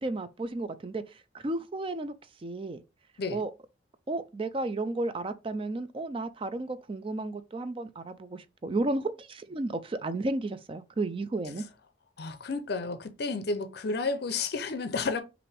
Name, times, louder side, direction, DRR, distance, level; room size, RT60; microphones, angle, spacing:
voice 1, 0.0-1.0 1.3-2.1 2.4-2.8 3.3-3.5 4.1-11.6, right 2 dB, 30° right, 0.4 m, -33 dB
voice 2, 12.2-15.2, left 4 dB, 55° left, 0.5 m, -31 dB
5.7 x 2.6 x 3.3 m
head